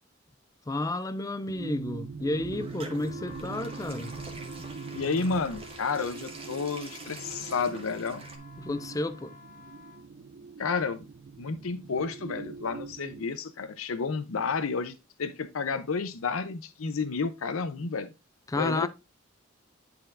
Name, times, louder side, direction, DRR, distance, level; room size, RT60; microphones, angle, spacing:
voice 1, 0.7-4.1 8.6-9.4 18.5-18.9, left 2 dB, 15° left, 0.4 m, -31 dB
sound 1, 1.5-13.2, right 5 dB, 55° right, 0.5 m, -42 dB
sound 2, 2.1-8.4, right 3 dB, 30° right, 1.1 m, -46 dB
sound 3, 2.8-10.1, left 5 dB, 40° left, 1.1 m, -53 dB
voice 2, 4.9-8.2 10.6-11.0 11.4-14.9 15.2-18.1 18.6-18.9, left 4 dB, 85° left, 0.6 m, -31 dB
9.6 x 4.3 x 2.5 m
head